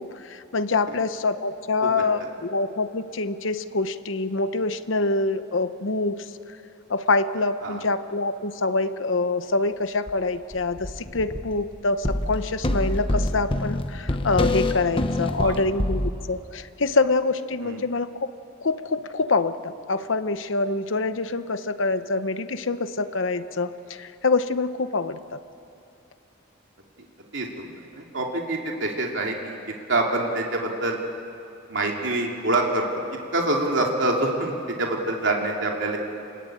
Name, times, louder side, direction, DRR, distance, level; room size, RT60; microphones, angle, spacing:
voice 1, 0.0-6.3 6.9-18.3 18.6-25.4, left 3 dB, 80° left, 11 dB, 0.9 m, -25 dB
sound 1, 10.1-10.2 10.5-11.6 12.0-16.1, left 1 dB, 25° left, 1.1 m, -26 dB
voice 2, 27.3-29.6 29.9-31.0 31.7-32.9 33.3-36.0, right 2 dB, 70° right, 0 dB, 2.8 m, -26 dB
27.5 x 21.0 x 8.8 m, 2.7 s
head